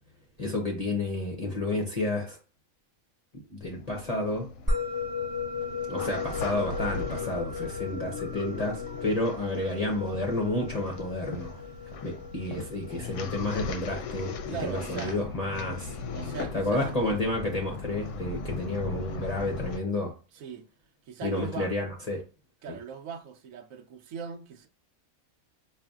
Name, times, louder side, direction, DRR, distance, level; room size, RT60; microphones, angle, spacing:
voice 1, 0.4-2.4 3.5-4.5 5.9-11.5 12.0-15.9 16.5-20.1 21.2-22.2 22.7-22.8, left 2 dB, 40° left, 0.6 m, -30 dB
sound 1, 3.6-19.8, left 4 dB, 65° left, 0.8 m, -38 dB
Musical instrument, 4.7-15.3, left 4 dB, 15° right, 0.9 m, -36 dB
voice 2, 14.5-15.2 16.1-17.2 20.3-20.7 21.1-21.7 22.6-24.7, right 7 dB, 75° right, 1.0 m, -39 dB
5.0 x 2.5 x 2.3 m
omnidirectional pair, 1.5 m